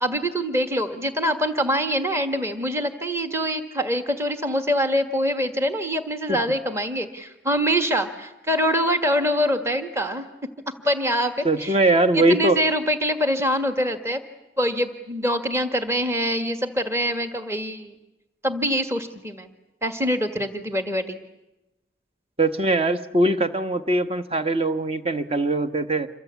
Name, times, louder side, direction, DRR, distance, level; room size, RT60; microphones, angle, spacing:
voice 1, 0.0-10.3 10.8-11.8 12.1-14.2 14.6-17.9 18.4-19.5 19.8-21.2, equal, 15° right, 7 dB, 1.6 m, -24 dB
voice 2, 11.4-12.6 22.4-26.1, right 2 dB, 35° right, 10 dB, 1.1 m, -21 dB
27.5 x 24.0 x 8.3 m, 0.95 s
head